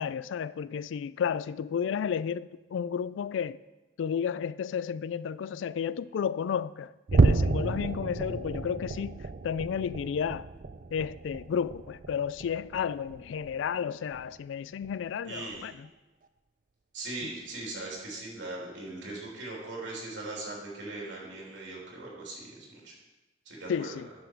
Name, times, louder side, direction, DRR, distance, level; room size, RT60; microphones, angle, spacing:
voice 1, 0.0-3.6 4.0-10.5 10.9-15.9 23.7-24.1, left 7 dB, 80° left, 0.3 m, -32 dB
sound 1, 7.1-13.7 14.1-14.4 14.8-15.0 15.5-15.6, right 3 dB, 45° right, 0.4 m, -30 dB
voice 2, 15.2-15.7 16.9-22.9 23.4-24.0, right 2 dB, 75° right, 3.1 m, -40 dB
9.6 x 7.0 x 4.6 m
head